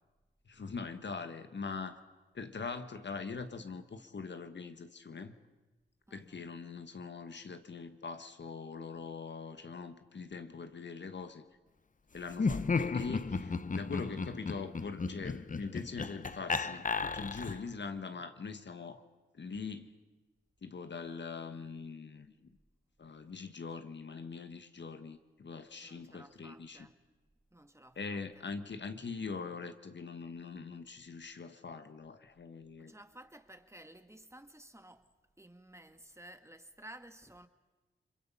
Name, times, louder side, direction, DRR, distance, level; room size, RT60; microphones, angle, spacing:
voice 1, 0.5-2.0 2.3-5.3 6.1-11.4 12.1-19.0 19.3-19.9 20.6-22.3 23.0-26.9 27.9-32.9, left 4 dB, 55° left, 1.4 m, -42 dB
voice 2, 6.1-6.5 25.8-27.0 27.5-28.2 32.8-35.1 35.4-37.5, right 1 dB, 15° right, 1.7 m, -54 dB
Laughter, 12.3-17.7, left 4 dB, 40° left, 0.9 m, -34 dB
29.5 x 22.5 x 5.5 m
cardioid pair, 40°, 21 cm